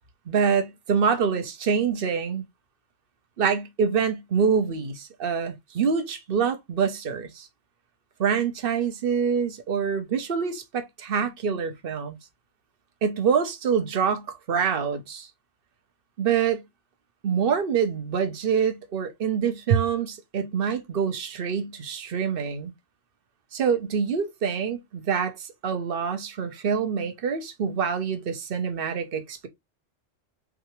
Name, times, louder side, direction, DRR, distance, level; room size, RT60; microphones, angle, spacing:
voice 1, 0.3-2.4 3.4-7.5 8.2-12.2 13.0-15.3 16.2-16.6 17.2-22.7 23.5-29.5, right 6 dB, 50° right, 1.1 m, -26 dB
5.0 x 3.4 x 3.1 m
omnidirectional pair, 1.3 m